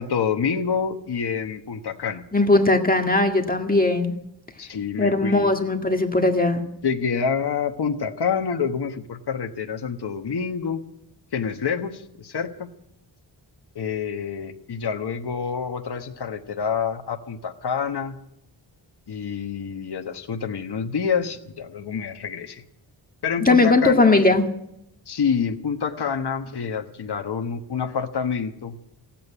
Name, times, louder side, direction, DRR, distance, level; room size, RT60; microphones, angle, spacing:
voice 1, 0.0-2.2 4.6-5.5 6.8-10.8 11.3-12.7 13.7-18.2 19.1-22.6 23.2-24.2 25.1-28.8, left 6 dB, 60° left, 5 dB, 1.2 m, -27 dB
voice 2, 2.3-4.1 5.0-6.6 23.4-24.4, left 2 dB, 20° left, 4 dB, 1.8 m, -19 dB
16.0 x 8.8 x 9.9 m, 0.79 s
cardioid pair, 70°, 45 cm